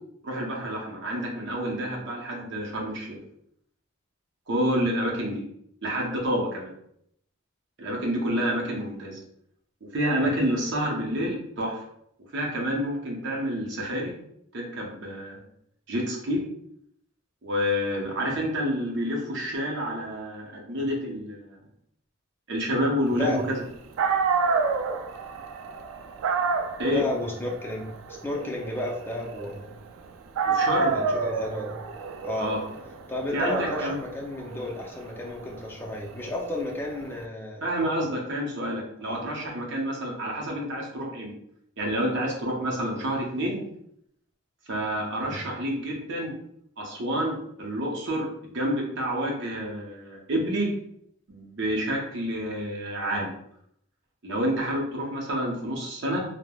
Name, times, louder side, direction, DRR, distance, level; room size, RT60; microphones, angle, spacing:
voice 1, 0.2-3.2 4.5-5.4 5.8-6.7 7.8-9.2 9.9-11.8 12.3-14.1 14.5-15.4 15.9-16.4 17.4-21.6 22.5-23.6 26.8-27.0 30.5-30.9 32.4-32.6 33.3-34.0 37.6-41.3 41.8-43.6 44.7-46.3 46.8-50.7 51.3-53.3 54.2-56.2, equal, 65° right, -1 dB, 0.7 m, -28 dB
voice 2, 23.1-23.4 26.9-29.7 30.8-31.8 32.2-32.5 33.1-37.6 39.1-39.2 45.2-45.4, left 1 dB, 10° left, -2 dB, 0.4 m, -32 dB
Dog, 23.7-23.8 24.0-30.0 30.3-37.1, right 5 dB, 90° right, 0.3 m, -29 dB
3.1 x 2.1 x 2.3 m, 0.73 s
head